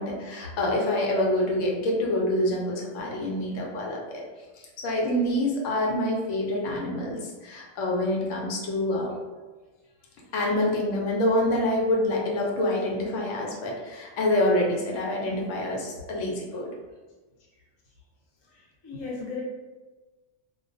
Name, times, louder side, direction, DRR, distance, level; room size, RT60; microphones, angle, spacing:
voice 1, 0.0-4.2 4.8-9.1 10.3-16.7, left 1 dB, 85° left, -1 dB, 1.0 m, -26 dB
voice 2, 4.1-4.4 9.8-10.3 13.5-13.9 17.5-17.6 18.4-19.4, left 4 dB, 40° left, -4 dB, 0.4 m, -40 dB
2.2 x 2.2 x 2.5 m, 1.2 s
omnidirectional pair, 1.3 m